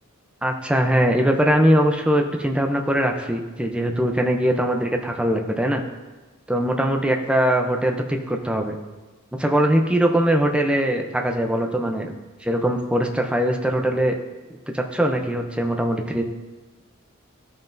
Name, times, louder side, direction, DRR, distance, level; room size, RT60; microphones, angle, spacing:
voice 1, 0.4-5.8 6.5-8.8 9.4-12.1 12.4-14.1 14.7-16.2, equal, 5° right, 3 dB, 0.5 m, -21 dB
13.5 x 5.6 x 2.6 m, 1.2 s
head